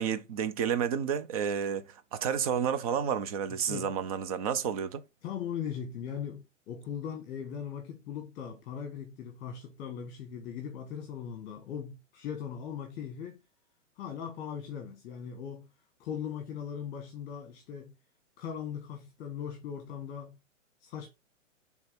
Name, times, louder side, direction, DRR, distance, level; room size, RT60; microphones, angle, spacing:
voice 1, 0.0-5.0, right 8 dB, 30° right, 0.6 m, -30 dB
voice 2, 3.5-3.9 5.2-13.4 14.0-15.7 16.0-17.9 18.4-20.4 20.8-21.1, left 8 dB, 25° left, 1.3 m, -39 dB
6.3 x 3.5 x 5.1 m
hypercardioid pair, 135°, 39 cm